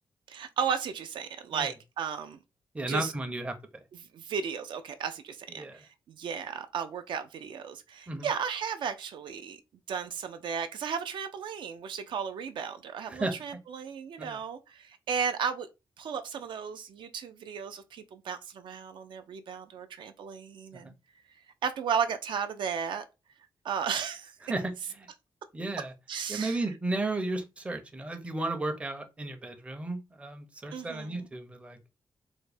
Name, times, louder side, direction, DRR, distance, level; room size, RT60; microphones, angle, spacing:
voice 1, 0.3-2.4 2.8-3.1 4.1-9.6 9.9-15.7 16.0-20.9 21.6-23.0 23.6-24.4 26.1-26.7 30.7-31.3, right 7 dB, 70° right, 0.4 m, -34 dB
voice 2, 2.7-3.5 5.6-5.8 8.1-8.3 13.1-13.3 14.2-14.4 24.5-24.7 25.5-25.9 26.3-31.8, right 2 dB, 15° right, 0.5 m, -33 dB
3.5 x 2.1 x 3.3 m
wide cardioid pair, 150°, 8 cm